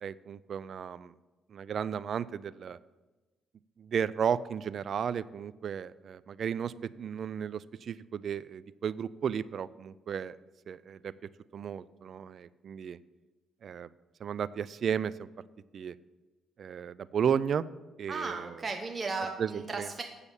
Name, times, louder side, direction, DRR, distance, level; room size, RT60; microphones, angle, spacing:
voice 1, 0.0-1.1 1.5-2.8 3.8-10.4 10.7-11.1 11.5-13.0 13.6-13.9 14.2-15.3 15.7-15.9 16.6-17.6 18.0-18.5 19.4-19.9, right 7 dB, 55° right, 18 dB, 0.3 m, -34 dB
voice 2, 18.1-20.0, right 4 dB, 35° right, 4 dB, 0.9 m, -35 dB
8.2 x 6.9 x 6.9 m, 1.2 s
cardioid pair, 90°, 0 cm